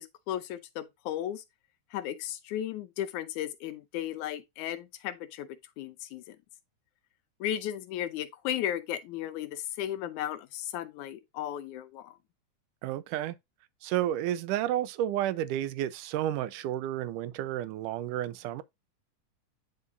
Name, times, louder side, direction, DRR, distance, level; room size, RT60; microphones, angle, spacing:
voice 1, 0.0-1.4 1.9-5.5 5.8-6.4 7.4-12.2, left 11 dB, 75° left, 2.2 m, -35 dB
voice 2, 12.8-13.4 13.8-18.6, right 12 dB, 90° right, 2.2 m, -31 dB
9.5 x 4.8 x 2.6 m
omnidirectional pair, 3.6 m